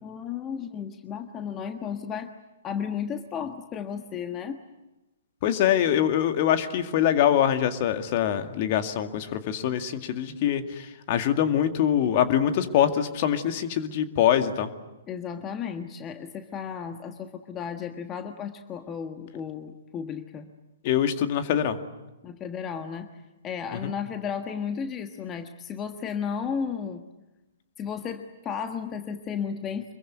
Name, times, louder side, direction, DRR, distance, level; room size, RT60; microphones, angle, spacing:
voice 1, 0.0-2.3 2.6-4.6 15.1-20.5 22.2-23.1 23.4-27.0 27.8-29.9, left 7 dB, 20° left, 7 dB, 1.4 m, -34 dB
voice 2, 5.4-14.7 20.8-21.8 23.8-23.9, left 10 dB, 40° left, 8 dB, 2.1 m, -24 dB
26.5 x 22.5 x 9.3 m, 1.0 s
figure-of-eight pair, 120°, 0 cm